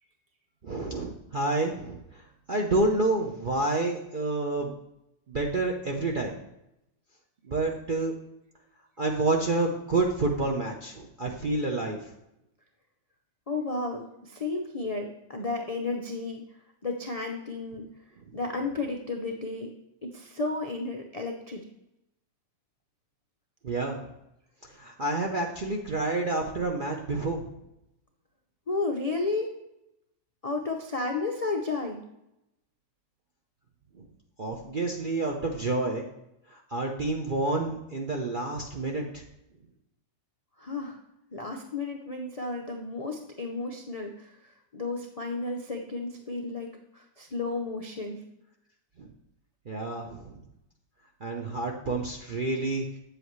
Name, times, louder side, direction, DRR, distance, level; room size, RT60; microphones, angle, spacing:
voice 1, 0.6-4.7 5.3-6.4 7.4-8.1 9.0-12.1 18.3-18.4 23.6-24.1 24.6-27.5 34.0-34.1 34.4-36.0 36.5-39.2 49.0-49.1 49.7-50.4 51.2-52.9, right 2 dB, 50° right, 1 dB, 0.6 m, -29 dB
voice 2, 13.5-16.4 16.8-17.8 18.3-19.7 20.0-21.6 28.7-29.5 30.4-32.0 40.6-41.0 41.3-44.3 44.7-46.7 46.9-48.2, left 3 dB, 60° left, 1 dB, 0.3 m, -32 dB
8.4 x 7.9 x 3.1 m, 0.86 s
omnidirectional pair, 1.9 m